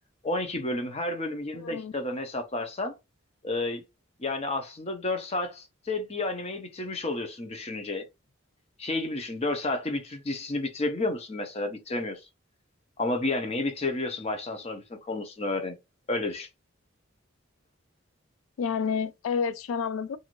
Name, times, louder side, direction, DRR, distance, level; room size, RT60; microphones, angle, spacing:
voice 1, 0.2-3.0 3.4-3.8 4.2-8.0 8.8-12.2 13.0-15.8 16.1-16.5, left 2 dB, 30° left, 0.7 m, -31 dB
voice 2, 1.5-1.9 18.6-20.2, left 6 dB, 80° left, 0.3 m, -29 dB
2.6 x 2.5 x 2.9 m
head